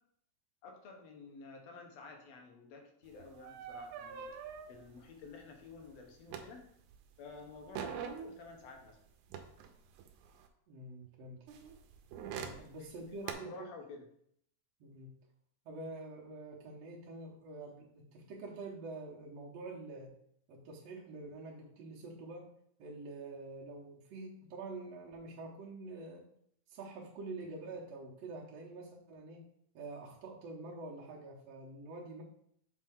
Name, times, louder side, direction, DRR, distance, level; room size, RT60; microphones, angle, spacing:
voice 1, 0.6-4.3 4.7-6.6 7.2-9.0 12.4-12.6 13.1-14.0, left 4 dB, 65° left, 2 dB, 2.0 m, -51 dB
sound 1, 3.1-7.0 7.3-10.5 11.5-13.3, right 8 dB, 85° right, 2.1 m, -45 dB
voice 2, 10.7-11.4 12.3-13.5 14.8-15.1 15.7-20.1 20.5-22.5 22.8-26.2 26.7-29.4 29.7-32.2, right 2 dB, 65° right, -4 dB, 2.0 m, -46 dB
6.4 x 4.5 x 3.6 m, 0.69 s
omnidirectional pair, 3.5 m